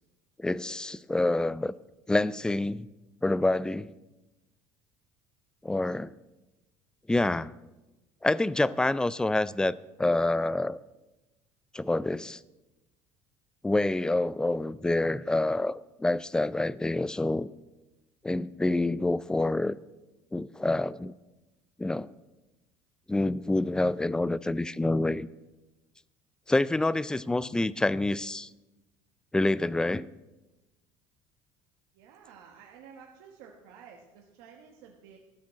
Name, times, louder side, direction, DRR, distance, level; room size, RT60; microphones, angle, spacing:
voice 1, 0.4-1.7 2.1-2.9 3.2-3.9 5.6-6.1 7.1-7.6 8.2-10.8 11.7-12.4 13.6-17.5 18.2-19.8 20.3-21.1 21.8-22.1 23.1-25.3 26.5-28.5 29.3-30.1, left 2 dB, 10° left, 19 dB, 0.4 m, -27 dB
voice 2, 31.9-35.2, right 7 dB, 85° right, 1 dB, 1.4 m, -52 dB
14.0 x 6.2 x 7.5 m, 1.1 s
supercardioid pair, 110°, 10 cm